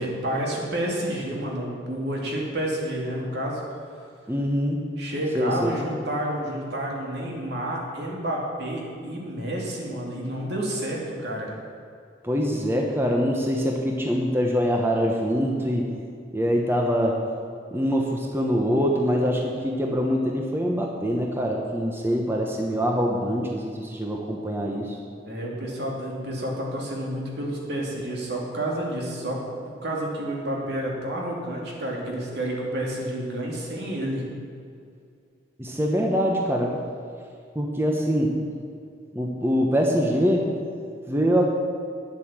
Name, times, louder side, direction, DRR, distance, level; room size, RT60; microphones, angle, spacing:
voice 1, 0.0-3.6 5.0-11.5 25.2-29.4 29.8-34.2, right 1 dB, 65° right, -2 dB, 2.7 m, -29 dB
voice 2, 4.3-4.8 5.3-5.7 12.2-15.8 16.3-17.2 17.7-24.9 35.6-36.7 37.5-38.3 39.1-40.5 41.1-41.4, equal, 15° right, 0 dB, 1.0 m, -24 dB
10.0 x 8.2 x 7.4 m, 2.4 s
head